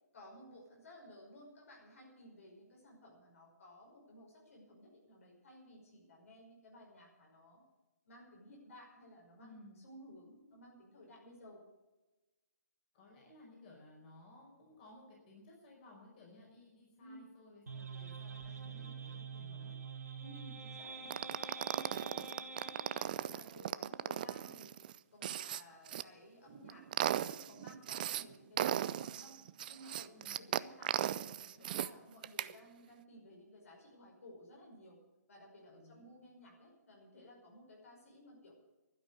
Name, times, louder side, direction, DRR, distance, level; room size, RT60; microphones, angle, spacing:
voice 1, 0.1-7.6 8.1-11.6 17.0-17.3 18.4-19.0 20.2-24.8 25.1-29.4 29.7-35.0 35.3-38.5, left 1 dB, 55° left, -1 dB, 5.4 m, -57 dB
voice 2, 9.4-9.8 12.9-19.8 30.1-30.5 35.7-36.1, left 2 dB, 35° left, -2 dB, 5.0 m, -58 dB
sound 1, 17.7-23.1, right 5 dB, 65° right, 2.2 m, -46 dB
sound 2, 21.1-26.0 26.5-28.2 28.6-31.9 32.2-32.5, right 11 dB, 30° right, 0.4 m, -37 dB
12.0 x 11.0 x 8.1 m, 1.1 s
figure-of-eight pair, 140°, 9 cm